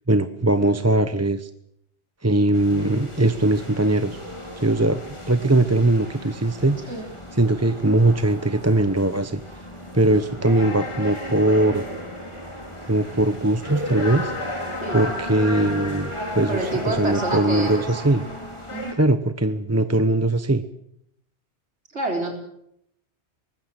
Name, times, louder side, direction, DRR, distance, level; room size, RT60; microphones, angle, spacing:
voice 1, 0.1-1.5 2.2-4.2 4.6-5.0 5.3-6.8 7.3-9.4 9.9-11.8 12.9-14.3 14.9-18.2 19.0-20.6, right 2 dB, 15° right, 10 dB, 0.9 m, -20 dB
sound 1, 2.5-18.9, left 1 dB, 25° left, 4.8 m, -34 dB
voice 2, 16.5-17.8 18.7-18.9 21.9-22.3, right 2 dB, 80° right, 3 dB, 4.3 m, -28 dB
24.0 x 20.0 x 7.7 m, 0.73 s
omnidirectional pair, 1.2 m